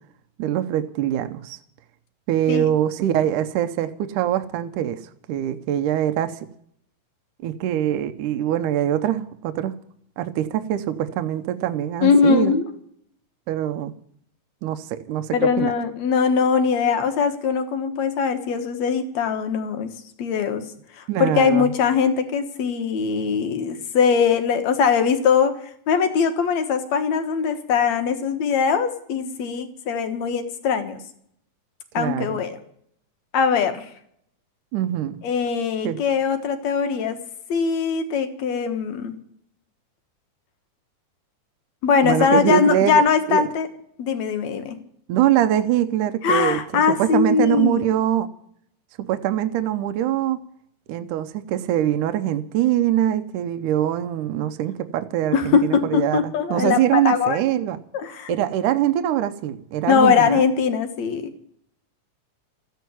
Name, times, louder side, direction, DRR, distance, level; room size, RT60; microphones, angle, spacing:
voice 1, 0.4-1.6 2.3-5.0 5.3-6.4 7.4-9.7 10.2-12.6 13.5-13.9 14.6-15.7 21.1-21.7 32.0-32.4 34.7-35.2 35.8-36.0 42.0-43.0 43.3-43.5 45.1-48.3 49.1-50.4 50.9-57.8 58.3-60.4, right 11 dB, 80° right, 9 dB, 2.2 m, -23 dB
voice 2, 12.0-12.7 15.3-19.9 20.2-20.7 21.0-25.5 25.9-31.0 31.9-32.6 33.3-33.9 35.2-37.2 37.5-39.2 41.8-43.7 44.0-44.8 46.2-47.9 55.3-57.4 57.9-58.3 59.9-61.3, left 6 dB, 60° left, 8 dB, 2.5 m, -21 dB
14.0 x 9.3 x 9.6 m, 0.67 s
omnidirectional pair, 3.8 m